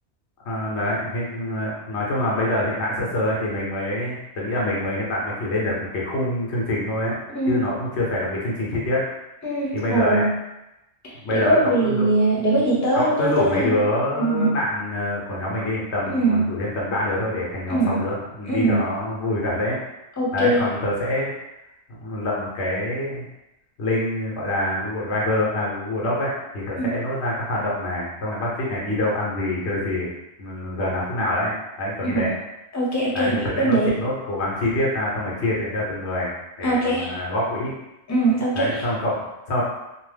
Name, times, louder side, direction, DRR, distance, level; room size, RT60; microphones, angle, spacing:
voice 1, 0.4-7.2 7.4-9.1 9.7-10.2 11.2-12.1 12.9-19.8 20.3-21.3 22.0-23.2 23.8-30.1 30.4-32.3 33.1-36.3 36.6-37.7 38.5-39.6, left 1 dB, 85° left, -4 dB, 1.1 m, -25 dB
voice 2, 7.3-7.6 9.4-10.3 11.0-13.8 14.1-14.6 16.1-16.5 17.7-18.0 18.5-18.8 20.2-20.6 26.8-26.9 32.0-32.3 32.7-33.9 36.6-37.1 38.1-38.8, right 2 dB, 20° left, -6 dB, 0.7 m, -22 dB
2.9 x 2.0 x 3.2 m, 0.93 s
omnidirectional pair, 1.1 m